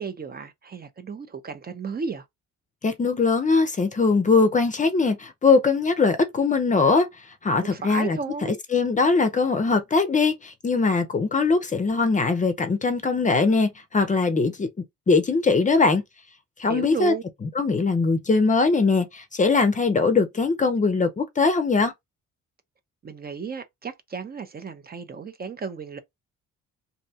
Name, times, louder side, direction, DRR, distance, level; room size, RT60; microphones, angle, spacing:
voice 1, 0.0-2.3 7.6-8.6 16.6-17.2 23.0-26.0, right 5 dB, 30° right, 0.5 m, -33 dB
voice 2, 2.8-7.1 7.4-8.2 8.7-14.7 15.1-16.0 16.6-17.1 17.6-21.9, left 4 dB, 25° left, 0.5 m, -21 dB
2.6 x 2.1 x 2.7 m
cardioid pair, 90°, 30 cm